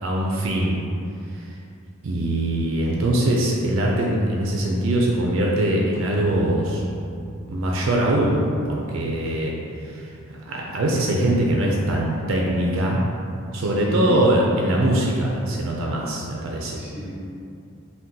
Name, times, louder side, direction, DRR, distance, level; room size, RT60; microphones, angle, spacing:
voice 1, 0.0-0.8 1.3-1.5 2.0-6.8 7.5-9.5 9.8-10.1 10.5-13.0 13.5-16.8, right 1 dB, 60° right, -2 dB, 0.3 m, -22 dB
sound 1, 5.9-10.4, equal, 30° left, 0.5 m, -40 dB
voice 2, 13.6-14.2 15.9-16.0 16.6-17.2, right 1 dB, 5° right, -9 dB, 0.7 m, -33 dB
2.7 x 2.2 x 3.6 m, 2.5 s
head